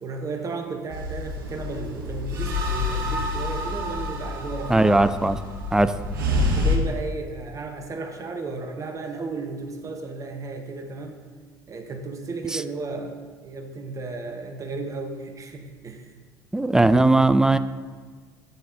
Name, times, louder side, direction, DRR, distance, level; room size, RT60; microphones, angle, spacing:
voice 1, 0.0-4.9 5.8-5.9 6.3-11.2 11.7-16.1, right 3 dB, 30° right, 4 dB, 0.9 m, -34 dB
sound 1, 0.9-6.8, left 2 dB, 70° right, 1.0 m, -27 dB
voice 2, 4.7-5.4 5.7-5.9 12.5-12.6 16.5-17.6, right 2 dB, 5° right, 12 dB, 0.3 m, -18 dB
9.1 x 8.5 x 2.6 m, 1.5 s
figure-of-eight pair, 65°, 12 cm